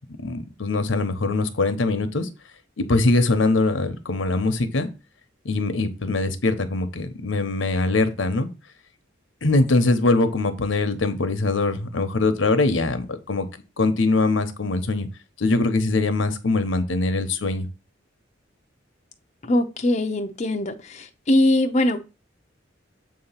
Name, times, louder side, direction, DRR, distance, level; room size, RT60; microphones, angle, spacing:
voice 1, 0.2-2.3 2.8-4.9 5.4-8.5 9.4-13.4 13.8-15.1 15.4-17.7, left 2 dB, 85° left, 0.9 m, -22 dB
voice 2, 19.5-20.7 21.3-22.0, left 1 dB, 40° left, 0.6 m, -20 dB
7.4 x 2.9 x 5.7 m
head